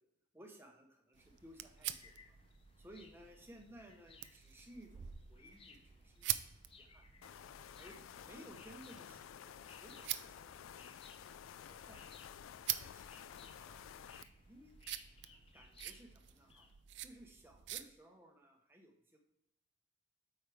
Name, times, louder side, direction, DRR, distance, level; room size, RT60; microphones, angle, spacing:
voice 1, 0.3-2.4 2.8-6.4 6.8-7.1 7.8-10.8 11.7-12.3 12.8-14.0 14.5-14.7 15.5-16.7 17.0-19.2, right 1 dB, 10° right, 2 dB, 0.9 m, -59 dB
sound 1, 1.1-16.7, left 4 dB, 25° left, 0.5 m, -63 dB
sound 2, 1.1-17.8, right 13 dB, 60° right, 0.4 m, -47 dB
sound 3, 7.2-14.2, left 9 dB, 80° left, 0.3 m, -53 dB
8.0 x 4.8 x 3.4 m, 0.84 s
head